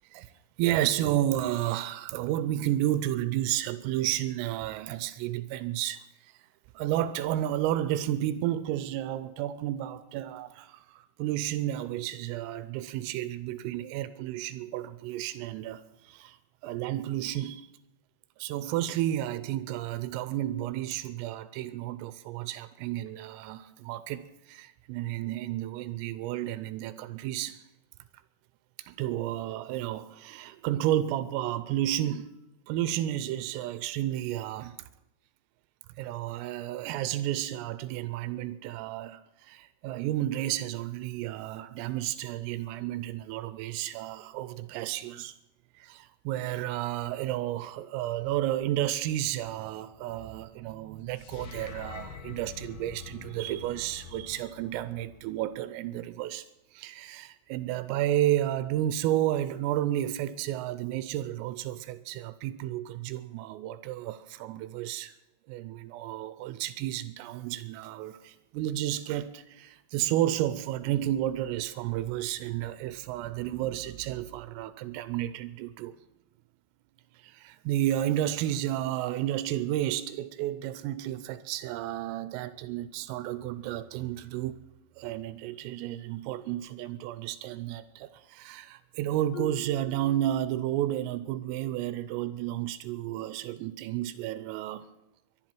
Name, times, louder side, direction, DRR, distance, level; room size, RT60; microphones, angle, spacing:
voice 1, 0.6-6.3 6.7-16.4 16.6-17.7 18.4-27.6 28.8-32.4 32.7-34.8 36.0-45.4 45.8-65.1 65.5-75.9 77.2-84.6 85.0-94.8, right 13 dB, 90° right, 3.3 m, -32 dB
sound 1, 51.2-55.5, left 6 dB, 65° left, 2.3 m, -46 dB
Marimba xylophone, 89.3-91.1, left 1 dB, 85° left, 1.5 m, -44 dB
23.0 x 11.0 x 4.5 m
omnidirectional pair, 5.8 m